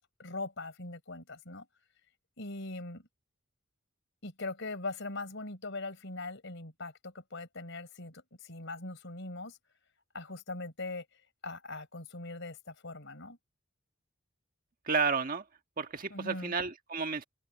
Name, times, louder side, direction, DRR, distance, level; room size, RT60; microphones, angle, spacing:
voice 1, 0.2-1.7 2.4-3.1 4.2-9.6 10.1-11.1 11.4-13.4 16.1-16.5, left 2 dB, 65° left, 4.3 m, -41 dB
voice 2, 14.9-15.4 15.8-17.2, right 5 dB, 45° right, 1.5 m, -31 dB
open air
head